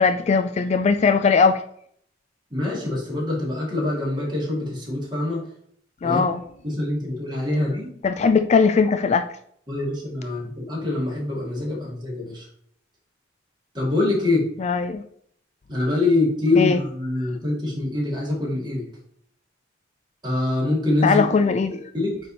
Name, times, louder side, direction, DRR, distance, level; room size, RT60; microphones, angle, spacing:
voice 1, 0.0-1.6 6.0-6.4 8.0-9.2 14.6-15.0 16.6-16.8 21.0-21.9, left 5 dB, 35° left, 8 dB, 0.3 m, -19 dB
voice 2, 2.5-5.4 6.0-6.2 6.6-7.9 9.7-12.5 13.7-14.5 15.7-18.8 20.2-21.3 21.9-22.2, left 2 dB, 25° right, -4 dB, 2.4 m, -24 dB
8.6 x 3.4 x 4.1 m, 0.66 s
head